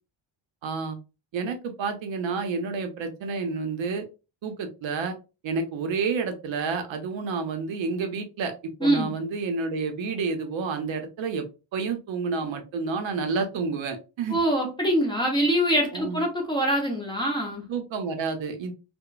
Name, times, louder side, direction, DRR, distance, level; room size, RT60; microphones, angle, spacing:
voice 1, 0.6-1.0 1.3-4.0 4.4-5.2 5.4-8.5 8.8-11.4 11.7-14.4 15.9-16.2 17.7-18.7, right 4 dB, 65° right, 6 dB, 0.6 m, -29 dB
voice 2, 8.8-9.1 14.3-17.7, equal, 10° left, -1 dB, 0.6 m, -24 dB
2.9 x 2.1 x 2.2 m, 0.30 s
wide cardioid pair, 155°, 50 cm